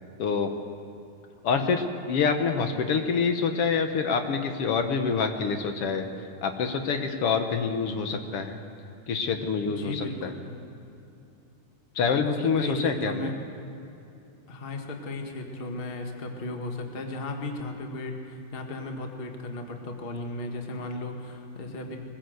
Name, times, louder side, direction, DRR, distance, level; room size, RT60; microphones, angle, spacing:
voice 1, 0.2-0.5 1.4-6.0 6.4-8.6 9.1-10.3 11.9-13.3, left 5 dB, 60° left, 6 dB, 1.6 m, -26 dB
voice 2, 9.6-10.4 12.4-13.3 14.5-22.0, left 2 dB, 25° left, 3 dB, 1.2 m, -35 dB
22.5 x 15.5 x 7.9 m, 2.7 s
omnidirectional pair, 3.7 m